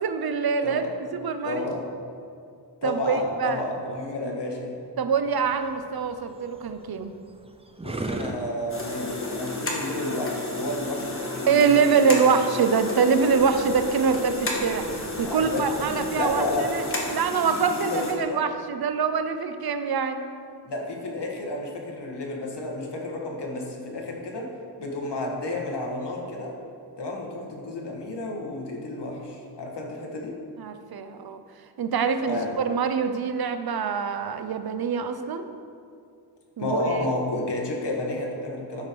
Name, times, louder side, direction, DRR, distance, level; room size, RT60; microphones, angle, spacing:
voice 1, 0.0-0.8 1.1-1.7 2.8-3.6 4.2-4.4 5.0-7.1 11.5-14.9 15.2-16.8 17.1-20.3 30.6-31.4 31.8-35.5 36.6-37.1, right 5 dB, 60° right, 9 dB, 0.7 m, -24 dB
voice 2, 0.6-0.9 1.4-1.9 2.8-4.8 7.8-12.4 15.2-16.7 17.5-18.5 20.6-24.5 24.8-26.6 27.0-30.4 32.3-32.6 36.6-38.9, left 2 dB, 70° left, 0 dB, 1.5 m, -31 dB
sound 1, 5.2-11.3, right 2 dB, 15° right, 0.5 m, -39 dB
sound 2, 8.7-18.1, left 2 dB, 30° left, 1.5 m, -33 dB
sound 3, 11.9-17.2, equal, 45° left, 1.7 m, -42 dB
12.0 x 5.0 x 4.6 m, 2.4 s
wide cardioid pair, 95°, 43 cm